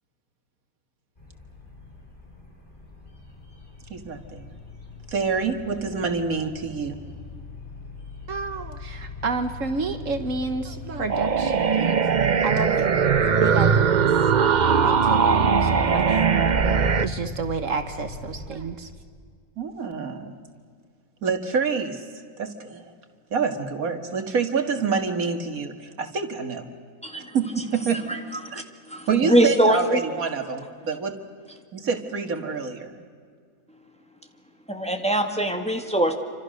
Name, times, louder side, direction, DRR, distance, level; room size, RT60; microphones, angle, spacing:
sound 1, 1.2-18.5, left 3 dB, 35° left, 5.3 m, -40 dB
voice 1, 3.9-4.5 5.1-6.9 19.6-20.3 21.2-22.0 22.4-22.9 23.3-26.7 27.3-28.0 28.3-28.6 29.1-31.2 31.7-32.9, right 5 dB, 80° right, 7 dB, 2.2 m, -27 dB
voice 2, 8.3-12.0 12.4-12.7 13.3-14.2 14.6-16.3 17.0-18.9, right 4 dB, 65° right, 8 dB, 1.5 m, -30 dB
sound 2, 11.1-17.1, right 6 dB, 40° right, 0.8 m, -20 dB
voice 3, 27.0-27.3 28.1-28.2 28.9-30.0 34.7-36.1, right 1 dB, 5° left, 4 dB, 1.9 m, -22 dB
28.5 x 25.5 x 6.5 m, 2.1 s
omnidirectional pair, 1.5 m